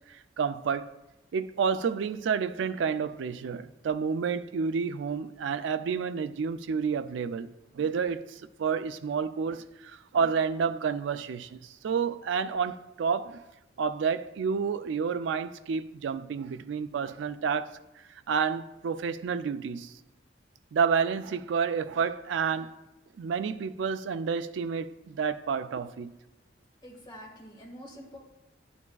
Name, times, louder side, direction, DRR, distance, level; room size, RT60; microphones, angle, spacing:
voice 1, 0.4-0.9 1.3-8.2 8.6-13.4 13.8-17.7 18.3-19.9 20.7-22.7 23.2-26.1, right 6 dB, 80° right, 0.3 m, -30 dB
voice 2, 26.8-28.2, equal, 25° left, 1.7 m, -46 dB
10.5 x 7.1 x 2.3 m
head